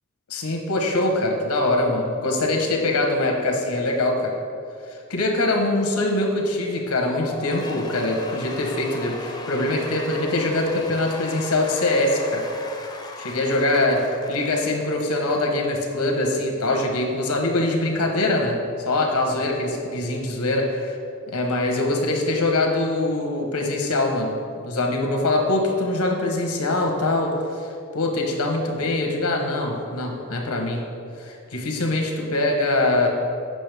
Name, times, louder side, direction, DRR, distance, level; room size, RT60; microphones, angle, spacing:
voice 1, 0.3-4.4 4.9-12.5 13.2-21.0 21.3-30.8 31.2-33.1, left 2 dB, 85° left, 2 dB, 1.1 m, -23 dB
Cheering / Applause / Crowd, 7.0-15.7, left 2 dB, 20° left, 0.5 m, -37 dB
7.7 x 6.2 x 3.4 m, 2.4 s
head